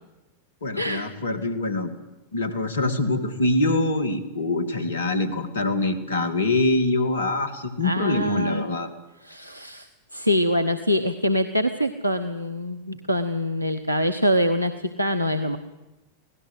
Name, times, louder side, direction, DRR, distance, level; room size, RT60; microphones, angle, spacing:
voice 1, 0.6-1.9 2.3-8.9, left 2 dB, 70° left, 11 dB, 2.5 m, -24 dB
voice 2, 7.8-8.6 9.2-15.6, equal, 90° left, 9 dB, 1.0 m, -24 dB
25.0 x 17.5 x 8.0 m, 1.0 s
figure-of-eight pair, 90°, 0 cm